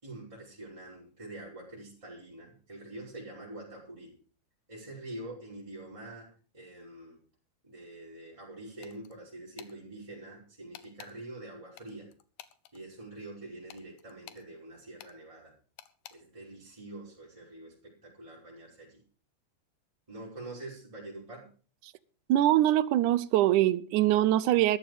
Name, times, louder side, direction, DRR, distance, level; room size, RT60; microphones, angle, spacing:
voice 1, 0.0-4.1 4.7-7.2 7.6-12.1 12.7-15.5 16.1-19.0 20.1-21.5, right 2 dB, 10° right, 5.3 m, -45 dB
sound 1, 8.8-9.2 9.6-9.7 10.7-11.1 11.8-12.8 13.7-14.5 15.0-15.1 15.8-16.2, left 12 dB, 90° left, 2.5 m, -50 dB
voice 2, 22.3-24.8, right 13 dB, 85° right, 2.2 m, -23 dB
13.5 x 12.0 x 5.0 m
omnidirectional pair, 3.5 m